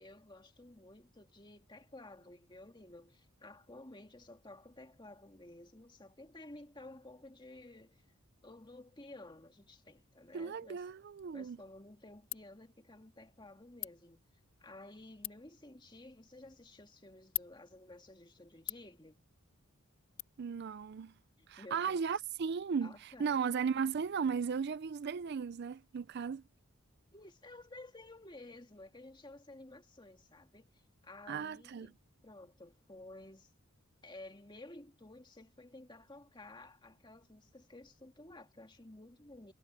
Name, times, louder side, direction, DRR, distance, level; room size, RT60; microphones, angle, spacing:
voice 1, 0.0-8.1 8.4-10.9 11.3-14.2 14.6-19.2 21.4-22.1 22.8-23.4 27.1-31.9 32.2-33.5 34.0-39.5, left 2 dB, 20° left, 2.0 m, -54 dB
voice 2, 10.3-11.6 20.4-21.1 21.5-26.4 31.3-31.9, right 6 dB, 50° right, 0.4 m, -36 dB
Ratchet pawl, 11.1-20.2, left 16 dB, 65° left, 2.0 m, -49 dB
head